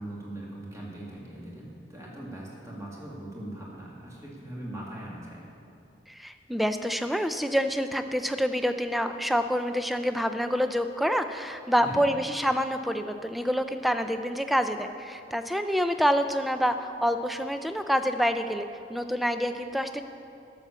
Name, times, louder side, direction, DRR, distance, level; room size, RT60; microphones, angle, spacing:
voice 1, 0.0-5.4 11.8-12.1, right 1 dB, 15° right, -4 dB, 2.0 m, -40 dB
voice 2, 6.1-20.0, equal, ahead, 8 dB, 0.4 m, -27 dB
11.5 x 6.9 x 7.0 m, 2.6 s
head